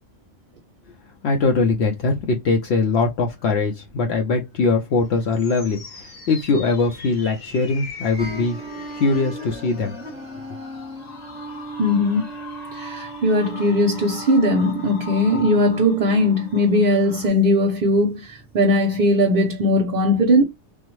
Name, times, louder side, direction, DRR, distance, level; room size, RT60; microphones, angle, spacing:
voice 1, 1.2-8.6 8.9-9.9, left 3 dB, 70° left, 0.8 m, -21 dB
sound 1, 4.9-17.3, left 3 dB, 40° left, 0.9 m, -40 dB
sound 2, 8.2-17.6 18.1-18.4, right 3 dB, 5° right, 1.0 m, -38 dB
voice 2, 11.8-12.3 12.7-20.4, left 1 dB, 55° right, 0.7 m, -19 dB
3.5 x 2.0 x 3.0 m
omnidirectional pair, 1.2 m